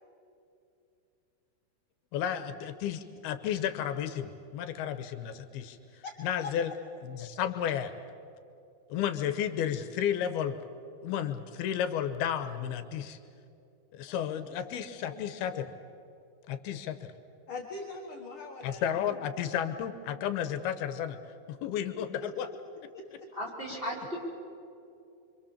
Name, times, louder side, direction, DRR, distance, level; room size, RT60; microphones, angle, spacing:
voice 1, 2.1-5.8 6.2-6.7 7.0-7.9 8.9-10.6 11.0-13.2 13.9-15.7 16.5-17.1 18.6-21.2 21.5-22.5, left 9 dB, 80° left, 10 dB, 2.8 m, -32 dB
voice 2, 5.6-6.5 7.2-7.3 14.1-15.6 17.5-19.2 22.2-22.3 22.9-23.3 23.7-23.8, left 3 dB, 45° left, 1 dB, 1.9 m, -44 dB
voice 3, 23.3-24.2, equal, 15° right, -3 dB, 5.1 m, -36 dB
26.0 x 25.5 x 7.3 m, 2.6 s
omnidirectional pair, 4.5 m